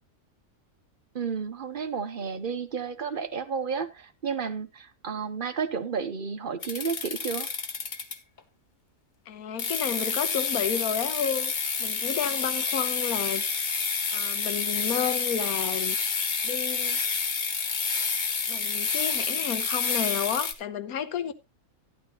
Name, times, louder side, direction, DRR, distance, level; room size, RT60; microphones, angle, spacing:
voice 1, 1.1-7.5, right 6 dB, 45° right, 0.8 m, -32 dB
sound 1, 6.6-8.4 9.6-20.5, left 5 dB, 40° left, 0.9 m, -29 dB
voice 2, 9.3-13.4 14.1-16.0 16.4-17.0 18.5-21.3, left 8 dB, 80° left, 1.4 m, -31 dB
11.5 x 11.0 x 2.9 m
omnidirectional pair, 1.5 m